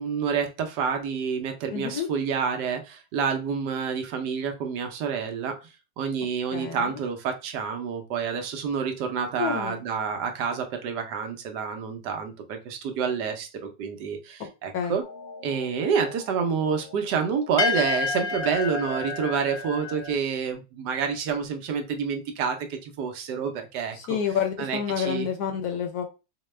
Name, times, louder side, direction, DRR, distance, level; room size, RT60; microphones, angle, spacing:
voice 1, 0.0-5.6 6.0-15.0 15.4-24.2 24.6-25.3, right 6 dB, 75° right, 5 dB, 1.2 m, -28 dB
voice 2, 1.7-2.1 6.5-7.0 9.4-9.8 14.4-14.5 14.7-15.0 23.9-26.0, left 7 dB, 70° left, 6 dB, 1.0 m, -29 dB
sound 1, 15.0-20.1, left 4 dB, 40° left, 0.8 m, -31 dB
4.9 x 2.2 x 3.1 m, 0.29 s
omnidirectional pair, 1.9 m